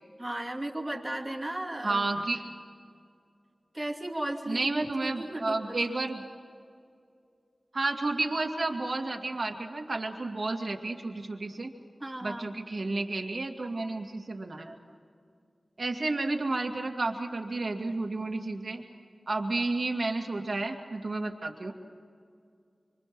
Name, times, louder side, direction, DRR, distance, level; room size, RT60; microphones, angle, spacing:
voice 1, 0.2-2.0 3.7-5.8 12.0-12.5, right 1 dB, 15° right, 1 dB, 2.6 m, -35 dB
voice 2, 1.8-2.5 4.5-6.2 7.7-11.7 12.2-14.8 15.8-18.8 19.3-21.7, right 2 dB, 50° right, 2 dB, 2.3 m, -31 dB
25.5 x 25.5 x 6.2 m, 2.3 s
wide cardioid pair, 90°, 0 cm